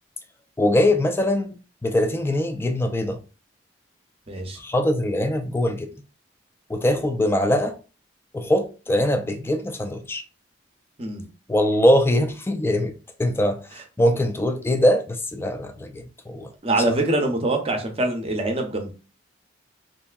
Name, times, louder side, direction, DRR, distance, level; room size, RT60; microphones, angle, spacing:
voice 1, 0.6-3.2 4.6-5.9 6.7-7.7 8.3-10.2 11.5-12.9 13.2-13.6 14.0-16.5, left 1 dB, 10° left, 0.3 m, -22 dB
voice 2, 4.3-4.6 11.0-11.3 16.6-18.9, right 2 dB, 30° right, 0.6 m, -24 dB
3.2 x 2.6 x 2.3 m
head